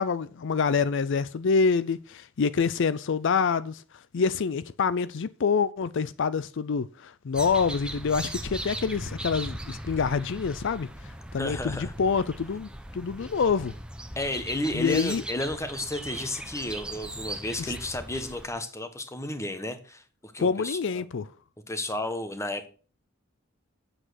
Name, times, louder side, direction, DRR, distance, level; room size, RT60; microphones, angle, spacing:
voice 1, 0.0-3.8 4.1-10.9 11.3-13.8 14.7-15.2 20.4-21.3, left 5 dB, 65° left, 0.5 m, -26 dB
sound 1, 7.3-18.5, right 1 dB, 5° right, 1.0 m, -38 dB
voice 2, 11.4-11.9 14.2-21.0 21.7-22.7, left 1 dB, 15° left, 1.2 m, -32 dB
8.8 x 7.5 x 6.3 m
head